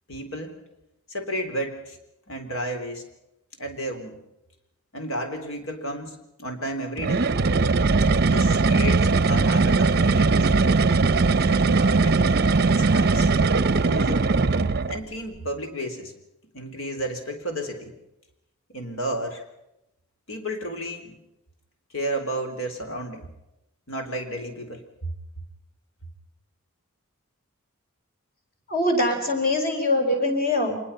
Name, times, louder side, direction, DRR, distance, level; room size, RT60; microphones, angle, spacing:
voice 1, 0.1-0.6 1.1-2.0 2.3-3.1 3.6-4.2 4.9-7.3 8.2-10.5 11.5-12.2 12.6-13.3 13.8-14.2 14.9-16.1 16.5-17.9 18.7-19.4 20.3-21.2 21.9-23.3 23.9-24.8, equal, 70° left, 6 dB, 3.8 m, -32 dB
sound 1, 7.0-15.0, right 3 dB, 50° right, 0.6 m, -20 dB
voice 2, 28.7-30.8, left 1 dB, 45° left, 4 dB, 4.7 m, -23 dB
25.5 x 20.5 x 5.7 m, 0.90 s
head